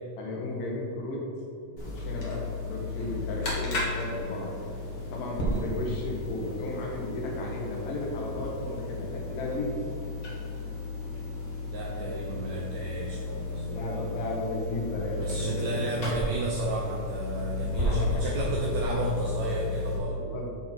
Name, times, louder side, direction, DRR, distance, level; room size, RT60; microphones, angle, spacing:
voice 1, 0.2-1.3 1.8-4.5 5.1-9.7 13.7-15.8 17.5-18.4 20.1-20.7, left 2 dB, 70° left, -1 dB, 3.1 m, -34 dB
sound 1, 1.8-20.0, left 2 dB, 40° left, 1.8 m, -33 dB
voice 2, 11.3-14.0 15.2-20.2, right 2 dB, 70° right, -2 dB, 1.7 m, -33 dB
8.6 x 6.4 x 4.5 m, 2.8 s
omnidirectional pair, 4.1 m